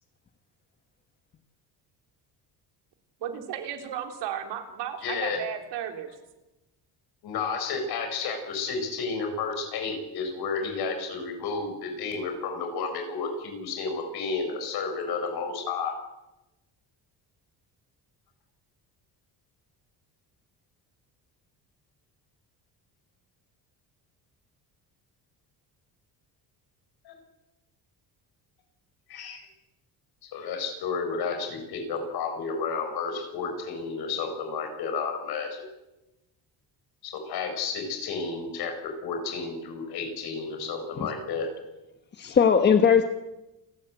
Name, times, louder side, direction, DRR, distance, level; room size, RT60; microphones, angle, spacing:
voice 1, 3.2-6.1, right 9 dB, 90° right, 5 dB, 3.6 m, -34 dB
voice 2, 5.0-5.4 7.2-16.0 27.0-27.1 29.1-29.5 30.2-35.7 37.0-41.5, left 4 dB, 70° left, 5 dB, 7.3 m, -31 dB
voice 3, 42.1-43.0, left 7 dB, 25° left, 7 dB, 1.2 m, -19 dB
28.5 x 14.0 x 9.4 m, 0.99 s
cardioid pair, 180°, 40 cm